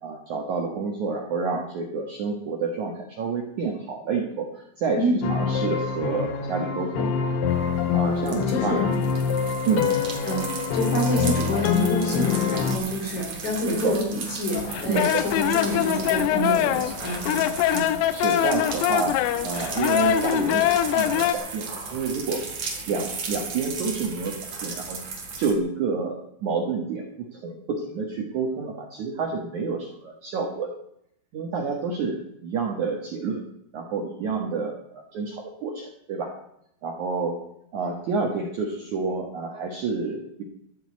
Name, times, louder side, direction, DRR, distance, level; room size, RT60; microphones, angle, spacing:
voice 1, 0.0-5.0 5.3-7.1 7.9-8.9 9.6-9.9 13.7-14.0 14.9-15.2 18.1-22.4 22.9-25.0 25.4-30.7 31.3-33.4 33.7-36.3 36.8-37.4 37.7-40.4, right 4 dB, 85° right, 1 dB, 1.6 m, -29 dB
voice 2, 4.9-5.3 8.3-8.9 10.3-17.9, equal, 40° left, 0 dB, 4.5 m, -28 dB
sound 1, 5.2-12.8, left 6 dB, 70° left, 2.8 m, -25 dB
sound 2, 7.5-25.5, right 4 dB, 45° right, 2.4 m, -36 dB
sound 3, 14.5-21.3, left 11 dB, 85° left, 3.5 m, -23 dB
13.5 x 7.9 x 8.3 m, 0.76 s
omnidirectional pair, 5.9 m